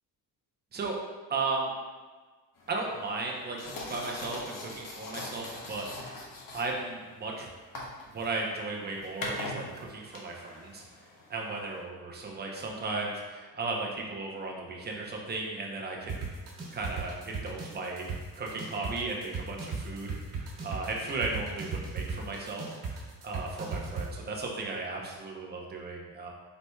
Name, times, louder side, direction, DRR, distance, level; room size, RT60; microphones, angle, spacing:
voice 1, 1.3-1.7 2.7-6.2 6.5-7.5 8.1-10.8 11.3-16.3 16.7-18.1 18.4-22.7 23.2-26.3, right 3 dB, 25° right, -1 dB, 0.6 m, -35 dB
sound 1, 2.6-11.8, left 2 dB, 55° left, 0.9 m, -43 dB
sound 2, 16.1-24.1, right 5 dB, 75° right, 1.5 m, -35 dB
4.5 x 4.0 x 2.2 m, 1.4 s
cardioid pair, 135°, 39 cm